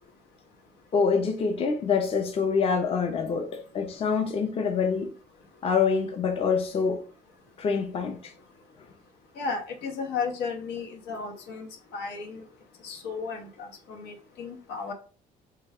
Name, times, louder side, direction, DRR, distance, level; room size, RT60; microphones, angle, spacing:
voice 1, 0.9-5.1 5.6-7.0 7.6-8.3, left 5 dB, 35° left, 0.5 m, -26 dB
voice 2, 9.4-12.5 12.8-14.9, left 5 dB, 85° left, 0.7 m, -34 dB
2.3 x 2.2 x 3.4 m
cardioid pair, 110°, 17 cm